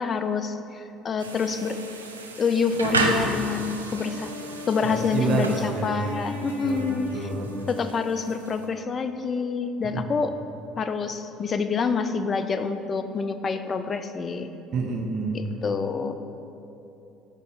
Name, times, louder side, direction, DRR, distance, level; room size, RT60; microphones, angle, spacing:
voice 1, 0.0-1.8 2.4-4.3 4.7-7.3 7.7-10.4 10.8-14.5 15.3-16.1, left 5 dB, 35° left, 9 dB, 0.4 m, -27 dB
sound 1, 1.2-8.7, right 3 dB, 90° right, 0.4 m, -33 dB
Wind instrument woodwind instrument, 3.9-8.6, left 2 dB, 85° left, 0.8 m, -39 dB
voice 2, 4.9-6.1 6.6-7.5 9.8-10.0 14.7-15.4, right 3 dB, 50° right, 2 dB, 0.8 m, -28 dB
5.3 x 4.1 x 5.0 m, 2.9 s
hypercardioid pair, 60°, 0 cm